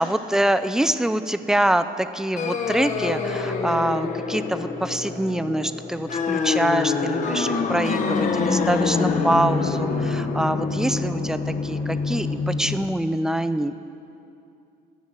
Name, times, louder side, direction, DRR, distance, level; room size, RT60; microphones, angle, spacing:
voice 1, 0.0-13.7, right 1 dB, 5° right, 12 dB, 0.3 m, -25 dB
sound 1, 2.4-12.9, left 4 dB, 50° left, 0.9 m, -26 dB
10.5 x 6.2 x 8.8 m, 2.6 s
cardioid pair, 110°, 17 cm